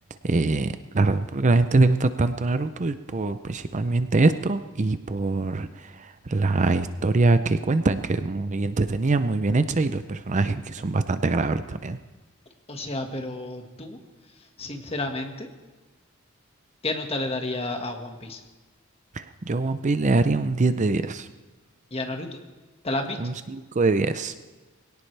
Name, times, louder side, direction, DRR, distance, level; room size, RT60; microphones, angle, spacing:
voice 1, 0.2-12.0 19.1-21.3 23.2-24.3, right 3 dB, 35° right, 11 dB, 0.5 m, -23 dB
voice 2, 12.7-14.0 14.6-15.5 16.8-18.4 21.9-22.4 22.8-23.2, left 2 dB, 30° left, 3 dB, 1.7 m, -31 dB
22.0 x 17.5 x 3.4 m, 1.3 s
head